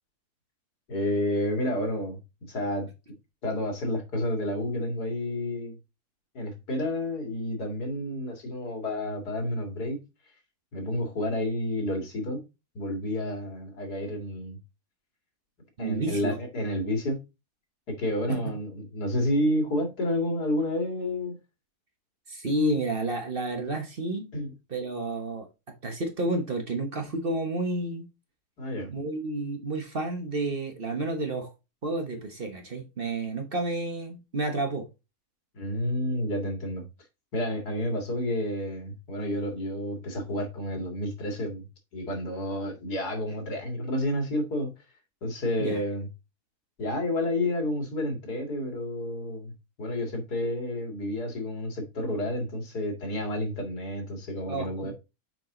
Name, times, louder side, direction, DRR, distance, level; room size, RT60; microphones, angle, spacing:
voice 1, 0.9-2.9 3.4-5.8 6.3-10.0 10.7-12.4 12.7-14.6 15.8-17.2 17.9-21.4 24.3-24.5 28.6-28.9 35.5-36.9 37.3-41.7 41.9-44.7 45.2-46.1 46.8-49.5 49.8-54.9, left 1 dB, 80° left, 2.6 m, -30 dB
voice 2, 15.8-16.4 18.3-18.5 22.3-24.3 24.7-25.5 25.8-28.1 28.9-31.5 31.8-34.9 45.6-45.8 54.5-54.9, right 2 dB, 40° right, 1.2 m, -30 dB
6.2 x 5.2 x 3.8 m
omnidirectional pair, 1.7 m